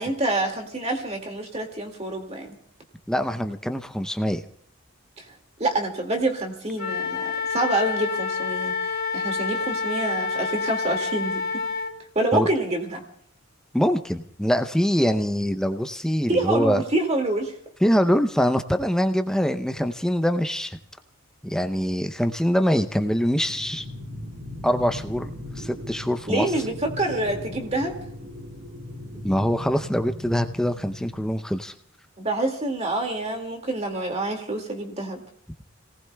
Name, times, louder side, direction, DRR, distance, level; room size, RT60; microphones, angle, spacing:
voice 1, 0.0-2.6 5.2-5.3 5.6-7.2 7.5-11.4 12.2-13.0 16.3-17.5 26.3-28.0 32.2-35.2, right 2 dB, 30° right, 3 dB, 2.1 m, -26 dB
voice 2, 3.1-4.4 12.3-12.5 13.7-16.8 17.8-20.8 21.4-23.9 24.6-25.3 25.6-26.5 29.2-31.7, equal, 5° left, 8 dB, 0.5 m, -24 dB
Wind instrument woodwind instrument, 6.8-11.9, left 4 dB, 45° left, 1.6 m, -28 dB
sound 1, 23.3-31.3, left 1 dB, 75° right, 1.8 m, -38 dB
30.0 x 18.5 x 2.3 m, 0.65 s
head